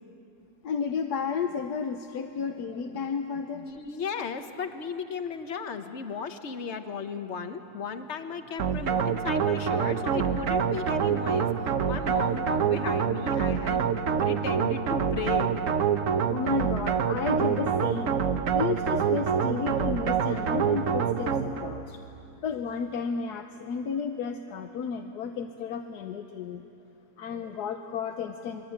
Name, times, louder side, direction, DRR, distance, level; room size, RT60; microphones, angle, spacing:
voice 1, 0.6-3.7 16.2-18.2 18.5-22.0 22.4-26.6 27.2-28.7, left 6 dB, 70° left, 5 dB, 1.4 m, -32 dB
voice 2, 3.6-15.6, left 5 dB, 45° left, 7 dB, 1.4 m, -35 dB
sound 1, 8.6-21.8, right 7 dB, 55° right, 1.2 m, -26 dB
29.0 x 22.0 x 8.8 m, 2.9 s
omnidirectional pair, 1.8 m